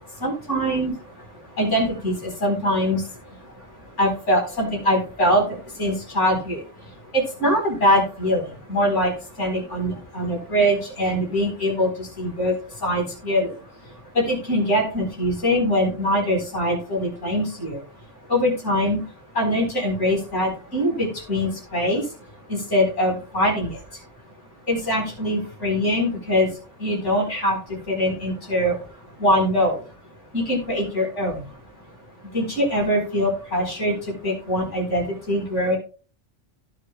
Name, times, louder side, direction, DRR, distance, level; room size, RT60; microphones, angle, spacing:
voice 1, 0.2-0.9 1.6-3.0 4.0-5.4 5.8-6.6 7.1-9.1 9.4-12.5 12.8-13.5 14.1-17.8 18.3-19.0 19.3-22.0 22.5-23.8 24.7-26.5 26.8-27.6 27.9-28.8 29.2-29.8 30.3-31.5 32.3-33.9 34.2-35.8, equal, 85° left, -2 dB, 4.7 m, -22 dB
16.5 x 6.8 x 2.3 m, 0.37 s
omnidirectional pair, 1.2 m